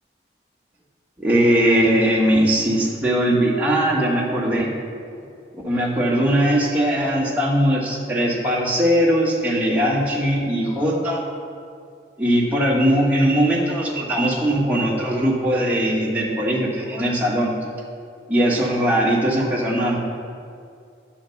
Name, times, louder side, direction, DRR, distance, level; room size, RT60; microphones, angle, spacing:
voice 1, 1.2-4.7 5.5-11.2 12.2-17.5 18.3-20.0, equal, 10° right, -5 dB, 1.5 m, -20 dB
10.5 x 4.6 x 7.0 m, 2.3 s
head